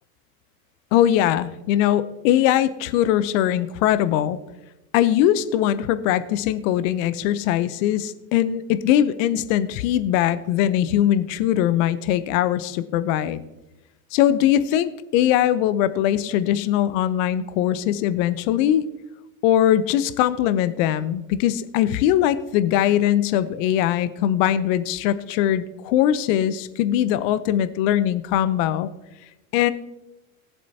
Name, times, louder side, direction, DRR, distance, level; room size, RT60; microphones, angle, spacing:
voice 1, 0.9-4.4 4.9-13.4 14.1-18.8 19.4-28.9 29.5-29.7, left 11 dB, 65° left, 14 dB, 0.8 m, -21 dB
18.5 x 7.5 x 2.8 m, 0.99 s
hypercardioid pair, 95°, 42 cm